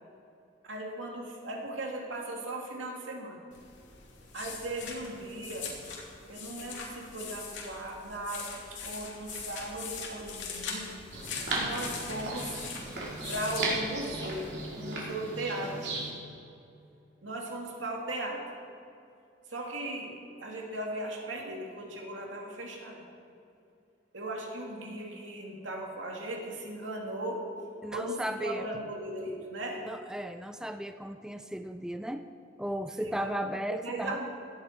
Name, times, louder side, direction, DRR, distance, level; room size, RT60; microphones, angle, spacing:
voice 1, 0.6-3.4 4.3-5.8 6.3-11.0 11.5-12.5 13.3-16.0 17.2-18.4 19.5-23.0 24.1-27.5 27.9-29.8 33.0-33.3 33.7-34.2, right 1 dB, 90° right, 0 dB, 2.5 m, -37 dB
sound 1, 3.5-14.5, left 5 dB, 80° left, 2.6 m, -42 dB
sound 2, 11.1-16.1, right 2 dB, 60° right, 3.2 m, -36 dB
voice 2, 27.8-28.7 29.9-32.3 32.6-34.2, equal, 5° right, 8 dB, 0.4 m, -35 dB
17.0 x 12.0 x 4.6 m, 2.6 s
head